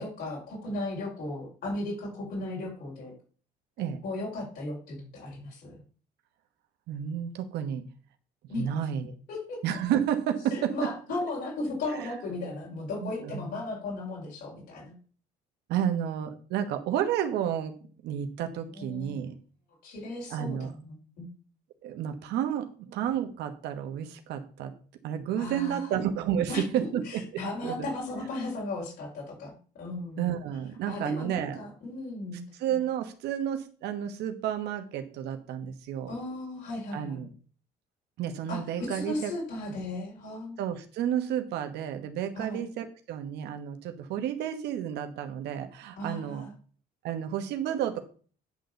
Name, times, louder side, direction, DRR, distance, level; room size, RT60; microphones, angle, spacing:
voice 1, 0.0-3.1 4.0-5.7 8.5-8.7 9.3-9.6 10.5-14.9 18.7-19.2 19.8-21.3 25.4-25.9 26.5-30.3 30.9-32.4 36.1-37.3 38.5-40.6 42.3-42.6 46.0-46.5, left 2 dB, 70° left, -4 dB, 5.4 m, -36 dB
voice 2, 6.9-7.8 8.6-9.1 9.6-10.7 11.9-12.1 13.0-13.5 15.7-17.8 18.0-19.3 20.3-20.7 21.8-24.7 25.0-27.2 27.6-27.9 30.2-31.6 32.6-36.1 36.9-37.3 38.2-39.3 40.6-46.4 47.0-48.0, right 9 dB, 80° right, 8 dB, 1.2 m, -31 dB
10.0 x 3.9 x 6.9 m, 0.41 s
cardioid pair, 110°, 17 cm